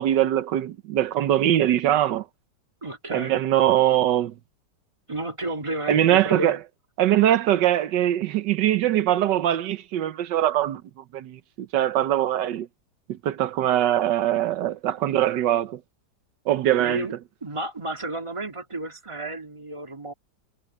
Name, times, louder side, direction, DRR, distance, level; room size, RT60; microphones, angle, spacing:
voice 1, 0.0-2.2 3.1-4.3 5.9-6.6 7.0-10.8 11.1-12.7 13.1-15.8 16.5-17.1, right 12 dB, 90° right, 1.5 m, -22 dB
voice 2, 2.8-3.4 5.1-6.6 16.8-17.1 17.4-20.1, right 2 dB, 15° right, 2.2 m, -32 dB
omnidirectional pair, 1.9 m